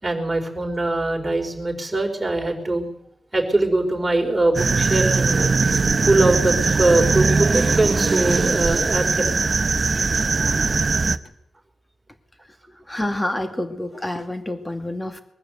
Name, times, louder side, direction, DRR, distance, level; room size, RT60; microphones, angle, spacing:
voice 1, 0.0-2.9 3.3-5.5 6.0-9.3, right 2 dB, 20° right, 1 dB, 4.8 m, -22 dB
sound 1, 4.5-11.2, right 4 dB, 40° right, 0.9 m, -20 dB
voice 2, 12.7-15.2, left 1 dB, 15° left, 7 dB, 2.3 m, -28 dB
22.5 x 14.0 x 8.2 m, 0.75 s
wide cardioid pair, 95°, 0 cm